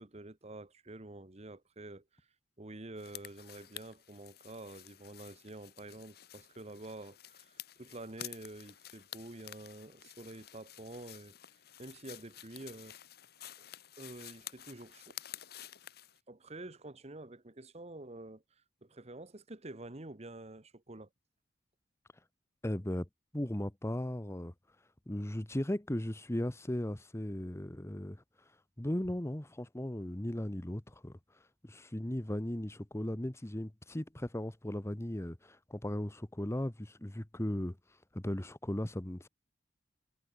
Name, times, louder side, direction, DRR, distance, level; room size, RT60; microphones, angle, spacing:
voice 1, 0.0-2.0 2.6-11.3 11.8-13.0 14.0-15.2 16.3-18.4 18.8-21.1, right 2 dB, 35° right, 1.4 m, -48 dB
sound 1, 3.0-16.2, left 12 dB, 60° left, 1.8 m, -51 dB
voice 2, 22.6-23.1 23.3-24.5 25.1-28.2 28.8-31.2 31.6-37.8 38.1-39.3, left 1 dB, 15° left, 1.0 m, -37 dB
head